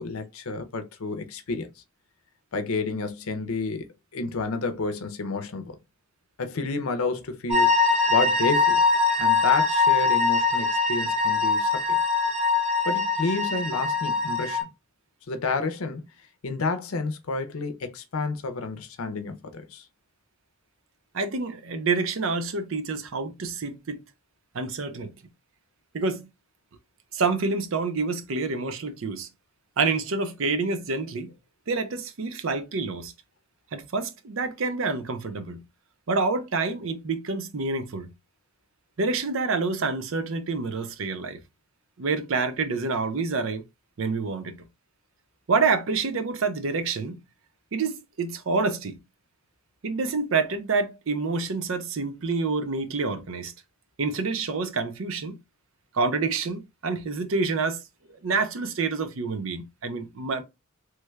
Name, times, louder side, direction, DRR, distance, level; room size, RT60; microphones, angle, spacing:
voice 1, 0.0-1.7 2.5-5.8 6.4-8.8 9.2-12.0 12.8-14.7 15.3-16.0 16.4-19.8, left 3 dB, 80° left, 0.6 m, -30 dB
sound 1, 7.5-14.6, left 4 dB, 30° right, 0.8 m, -22 dB
voice 2, 21.1-24.0 24.5-25.1 25.9-26.3 27.1-29.3 29.8-31.3 31.7-33.1 33.7-35.6 36.1-38.1 39.0-41.4 42.0-43.6 44.0-44.6 45.5-47.2 47.7-49.0 49.8-53.5 54.0-55.4 55.9-57.8 58.2-60.4, right 4 dB, 65° right, 0.5 m, -27 dB
3.2 x 2.3 x 3.2 m
head